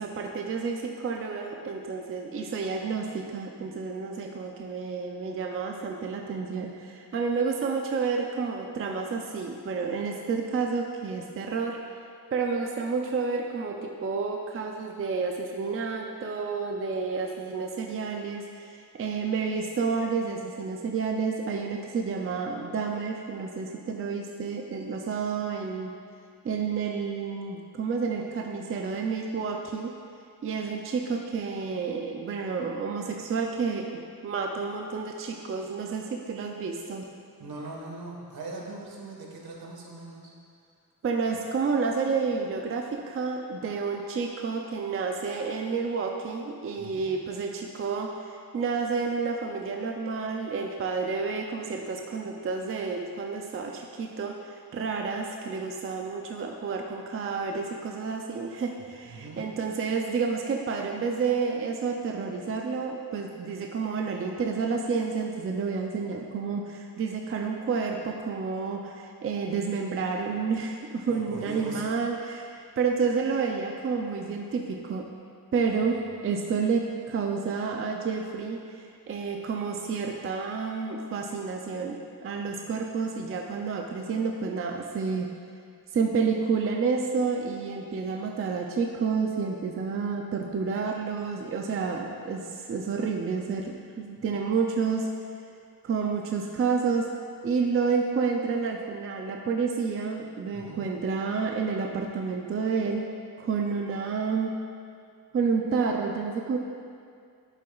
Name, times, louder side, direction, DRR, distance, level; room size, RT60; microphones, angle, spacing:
voice 1, 0.0-11.8 12.3-25.9 26.4-29.9 30.4-37.0 41.0-75.1 75.5-76.0 76.2-85.3 85.9-95.1 95.8-97.1 97.4-103.1 103.4-104.5 105.3-106.6, right 5 dB, 35° right, 2 dB, 0.4 m, -30 dB
voice 2, 37.4-40.3 46.8-47.1 59.0-59.4 71.1-71.8 100.5-100.9, right 2 dB, 75° right, -2 dB, 1.5 m, -40 dB
10.5 x 7.5 x 2.4 m, 2.3 s
wide cardioid pair, 175°, 37 cm